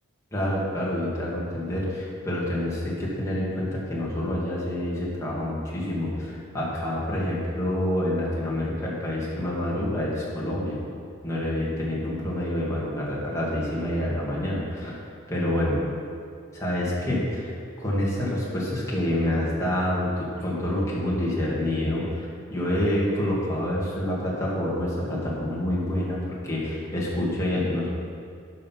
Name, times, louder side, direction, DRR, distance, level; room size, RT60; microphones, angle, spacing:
voice 1, 0.3-10.8 11.2-15.0 15.3-15.8 16.5-26.2 26.4-27.9, left 1 dB, 15° left, -7 dB, 2.0 m, -27 dB
11.5 x 5.7 x 4.5 m, 2.3 s
head